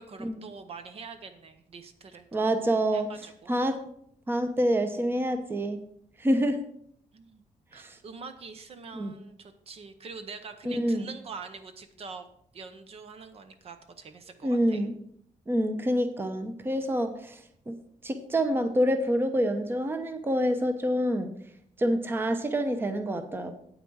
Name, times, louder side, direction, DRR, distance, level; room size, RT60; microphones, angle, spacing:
voice 1, 0.0-2.3 2.9-3.5 7.1-7.4 7.7-14.9, right 5 dB, 50° right, 9 dB, 0.8 m, -44 dB
voice 2, 2.3-3.1 3.5-3.8 4.3-5.8 6.2-6.6 7.8-8.0 8.9-9.1 10.6-11.1 14.4-14.9 15.5-17.4 17.7-17.8 18.0-21.3 21.8-23.6, equal, 15° right, 8 dB, 0.8 m, -27 dB
9.0 x 8.7 x 4.7 m, 0.68 s
wide cardioid pair, 175°, 13 cm